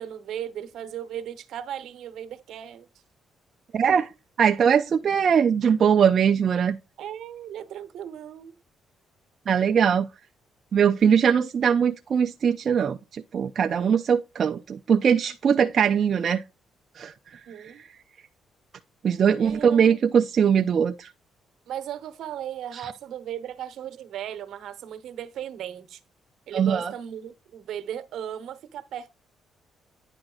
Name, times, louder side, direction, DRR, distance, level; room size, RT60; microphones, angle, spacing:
voice 1, 0.0-2.9 7.0-8.5 17.5-17.8 19.4-20.0 21.7-26.0 26.5-29.1, right 10 dB, 75° right, 1.0 m, -36 dB
voice 2, 3.7-4.1 4.4-6.8 9.5-10.1 10.7-16.4 17.0-17.1 17.6-17.7 19.0-21.1 22.8-22.9 26.5-26.9, right 7 dB, 55° right, 0.5 m, -21 dB
9.9 x 5.2 x 3.8 m
cardioid pair, 90°, 0 cm